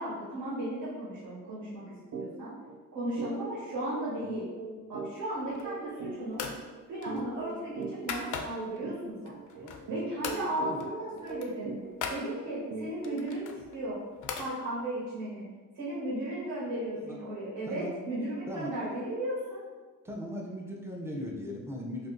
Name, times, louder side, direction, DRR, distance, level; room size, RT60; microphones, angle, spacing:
voice 1, 0.0-2.5 2.9-4.4 4.9-6.4 6.9-9.3 9.9-11.7 12.1-14.0 14.3-15.4 15.7-19.6, right 1 dB, 70° right, -8 dB, 1.3 m, -35 dB
sound 1, 2.1-2.3 2.6-2.8 3.2-13.4, right 3 dB, 55° right, 0.4 m, -41 dB
sound 2, 5.4-5.9 6.3-6.6 7.0-8.8 9.3-9.9 10.2-10.4 10.8-10.9 11.2-12.2 13.0-14.5, left 6 dB, 65° left, 0.5 m, -39 dB
voice 2, 9.5-10.0 10.7-10.8 17.0-17.2 17.7-18.0 18.5-18.8 20.0-22.1, equal, 10° right, -2 dB, 0.6 m, -38 dB
2.5 x 2.4 x 3.8 m, 1.3 s
cardioid pair, 100°, 33 cm